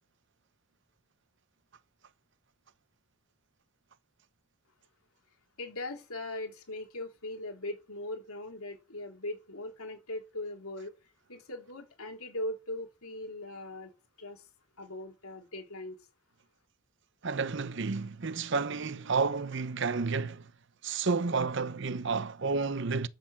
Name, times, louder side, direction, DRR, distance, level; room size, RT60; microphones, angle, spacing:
voice 1, 5.6-11.0 11.3-13.9 14.2-14.5 14.8-16.0, left 1 dB, 85° left, 3.1 m, -40 dB
voice 2, 17.2-20.5 20.8-23.1, right 4 dB, 55° right, 0.7 m, -31 dB
11.5 x 6.6 x 7.4 m
head